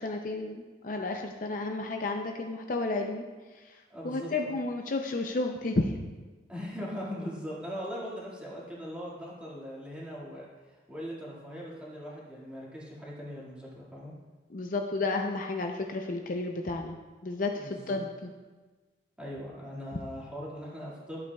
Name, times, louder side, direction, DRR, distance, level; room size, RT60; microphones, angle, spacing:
voice 1, 0.0-3.2 3.6-3.8 4.0-6.0 14.5-17.0 17.2-18.3, left 2 dB, 50° left, 3 dB, 0.5 m, -32 dB
voice 2, 3.9-4.5 6.5-14.1 17.5-18.0 19.2-21.2, equal, 5° right, -7 dB, 2.0 m, -40 dB
12.0 x 8.2 x 2.3 m, 1.3 s
head